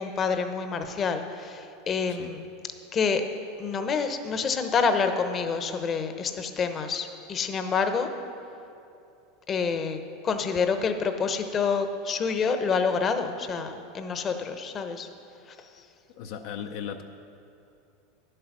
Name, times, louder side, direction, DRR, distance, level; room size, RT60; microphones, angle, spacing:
voice 1, 0.0-2.4 2.9-3.2 3.6-8.1 9.5-15.1, left 5 dB, 30° left, 8 dB, 0.8 m, -27 dB
voice 2, 16.2-17.0, left 8 dB, 65° left, 5 dB, 0.5 m, -36 dB
10.5 x 7.8 x 6.1 m, 2.7 s
supercardioid pair, 120°, 0 cm